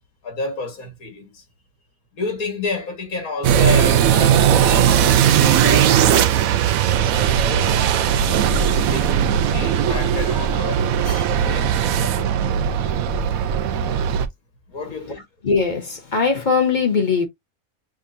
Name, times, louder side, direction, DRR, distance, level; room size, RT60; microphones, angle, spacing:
voice 1, 0.2-1.4 2.1-8.3 8.8-12.3 14.7-15.2, left 3 dB, 80° left, 2.1 m, -31 dB
sound 1, 3.4-14.3, right 9 dB, 80° right, 1.0 m, -18 dB
voice 2, 15.4-17.3, left 5 dB, 35° left, 1.1 m, -20 dB
6.5 x 2.5 x 2.6 m
omnidirectional pair, 1.5 m